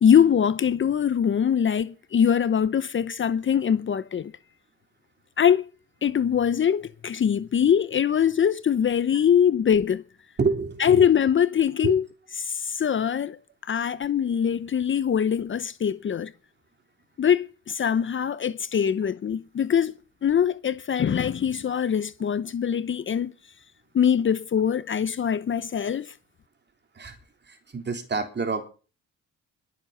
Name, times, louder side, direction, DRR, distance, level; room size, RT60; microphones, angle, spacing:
voice 1, 0.0-4.3 5.4-5.6 6.0-10.0 10.8-12.0 12.4-13.4 13.7-16.3 17.2-19.9 20.2-23.3 23.9-26.1, left 8 dB, 40° left, 0.8 m, -23 dB
voice 2, 10.4-11.0 11.8-11.9 27.0-27.2 27.5-28.6, right 4 dB, 35° right, 3.5 m, -27 dB
21.5 x 7.3 x 5.8 m
cardioid pair, 90°, 30 cm